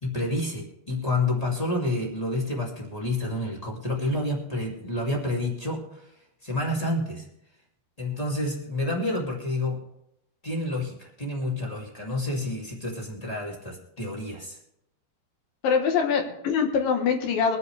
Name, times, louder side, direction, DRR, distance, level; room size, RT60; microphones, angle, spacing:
voice 1, 0.0-6.1 6.4-7.2 8.0-9.8 10.4-14.6, left 2 dB, 15° left, -3 dB, 1.4 m, -29 dB
voice 2, 15.6-17.6, left 6 dB, 65° left, 3 dB, 2.6 m, -23 dB
23.0 x 9.6 x 3.3 m, 0.83 s
omnidirectional pair, 4.9 m